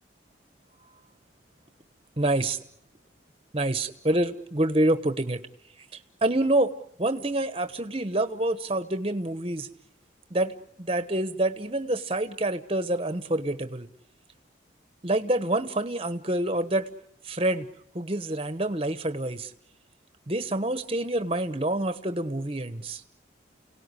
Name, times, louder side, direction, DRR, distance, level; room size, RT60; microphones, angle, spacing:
voice 1, 2.2-2.6 3.5-5.4 6.2-6.7 7.0-9.7 10.3-10.5 10.8-13.9 15.0-16.9 17.2-17.7 17.9-19.5 20.3-23.0, right 1 dB, 30° right, 11 dB, 1.1 m, -27 dB
29.5 x 18.0 x 9.9 m, 0.73 s
head